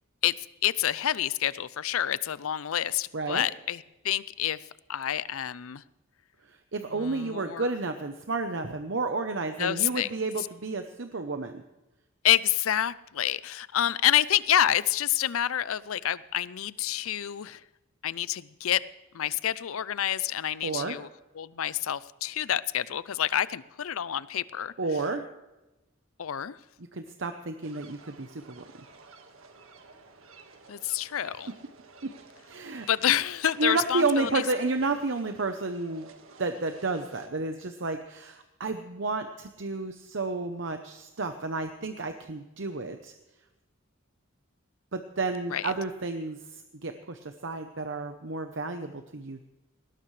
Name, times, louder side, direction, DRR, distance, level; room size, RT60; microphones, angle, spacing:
voice 1, 0.2-4.6 4.9-5.8 6.9-7.7 9.6-10.1 10.4-10.5 12.2-17.6 18.0-18.8 19.1-21.1 21.3-24.7 26.2-26.6 30.7-31.5 32.9-34.4 45.5-45.7, left 11 dB, 85° left, 18 dB, 0.5 m, -28 dB
voice 2, 3.1-3.5 6.5-11.6 20.6-21.0 24.8-25.2 26.9-28.6 32.0-32.1 32.5-32.9 33.6-36.1 36.4-43.1 44.9-46.4 46.8-49.4, right 3 dB, 60° right, 7 dB, 0.9 m, -31 dB
sound 1, 27.6-37.3, right 3 dB, 85° right, 1.7 m, -53 dB
19.5 x 17.5 x 3.3 m, 1.0 s
head